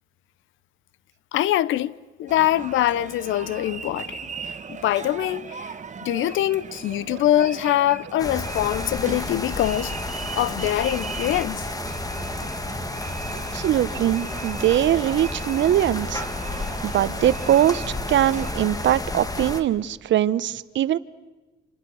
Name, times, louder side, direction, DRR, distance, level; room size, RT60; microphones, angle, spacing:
voice 1, 1.3-5.8 6.0-9.9 10.3-11.6, left 13 dB, 80° left, 0.8 m, -24 dB
sound 1, 2.3-18.5, right 6 dB, 35° right, 1.2 m, -39 dB
sound 2, 8.2-19.6, left 2 dB, 20° left, 2.1 m, -31 dB
voice 2, 13.3-16.2 16.8-21.0, right 12 dB, 70° right, 0.9 m, -22 dB
29.5 x 27.5 x 6.4 m
cardioid pair, 90°, 20 cm